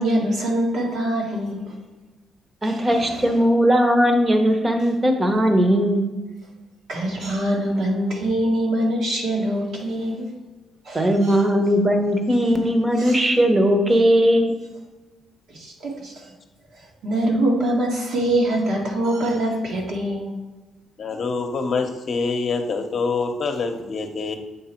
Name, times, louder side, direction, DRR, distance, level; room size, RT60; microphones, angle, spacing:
voice 1, 0.0-1.7 2.6-3.1 6.9-10.3 10.9-11.4 13.0-13.3 15.5-16.3 17.0-20.3, right 1 dB, 75° right, -2 dB, 1.9 m, -24 dB
voice 2, 2.6-6.1 10.9-14.5, equal, 20° right, 4 dB, 1.0 m, -18 dB
voice 3, 21.0-24.3, left 4 dB, 50° left, 4 dB, 0.8 m, -25 dB
8.1 x 3.3 x 4.4 m, 1.2 s
cardioid pair, 90°, 0 cm